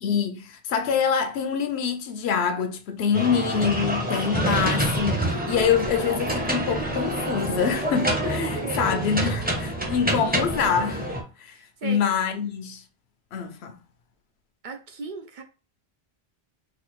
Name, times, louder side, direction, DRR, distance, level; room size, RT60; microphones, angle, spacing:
voice 1, 0.0-11.1 11.4-11.5 11.8-12.8 13.3-13.8, left 7 dB, 80° left, 0.9 m, -25 dB
sound 1, 3.1-11.2, right 1 dB, 10° right, 0.6 m, -27 dB
voice 2, 8.6-9.0 11.5-12.0 14.6-15.4, right 5 dB, 60° right, 0.6 m, -36 dB
4.1 x 2.4 x 3.0 m
omnidirectional pair, 1.1 m